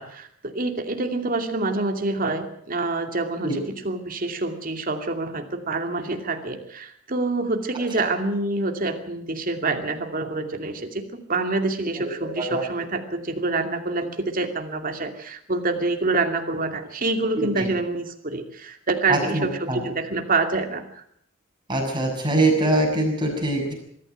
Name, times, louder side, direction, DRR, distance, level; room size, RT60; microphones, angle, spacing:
voice 1, 0.0-21.0, right 3 dB, 45° right, 6 dB, 2.5 m, -27 dB
voice 2, 17.4-17.7 19.1-19.8 21.7-23.7, right 2 dB, 25° right, 1 dB, 6.8 m, -23 dB
23.0 x 13.5 x 9.2 m, 0.67 s
head